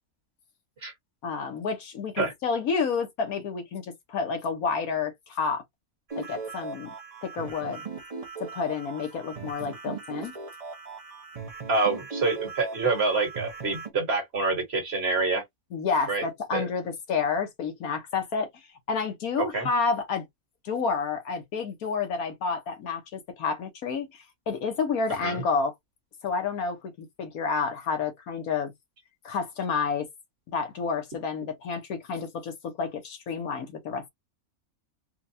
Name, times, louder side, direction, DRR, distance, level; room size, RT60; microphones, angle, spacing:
voice 1, 1.2-5.6 6.2-6.9 7.2-7.9 8.4-10.3 15.7-18.5 18.9-20.2 20.6-25.7 26.2-28.7 29.2-30.1 30.5-34.0, left 5 dB, 75° left, 1.5 m, -30 dB
sound 1, 6.1-13.9, right 4 dB, 30° right, 0.9 m, -39 dB
voice 2, 11.7-15.4 16.1-16.2 16.5-16.6 19.4-19.7 25.2-25.4, right 3 dB, 45° right, 1.6 m, -26 dB
4.4 x 2.3 x 2.7 m
omnidirectional pair, 1.6 m